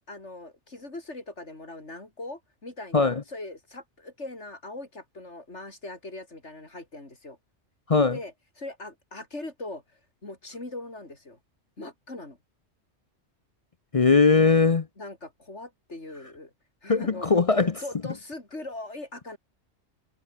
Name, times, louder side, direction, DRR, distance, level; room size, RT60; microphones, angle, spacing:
voice 1, 0.0-7.4 8.1-11.4 11.8-12.4 15.0-16.5 16.8-19.4, left 2 dB, 85° left, 5.3 m, -40 dB
voice 2, 13.9-14.9 16.9-17.7, left 4 dB, 35° left, 0.7 m, -20 dB
omnidirectional pair, 1.2 m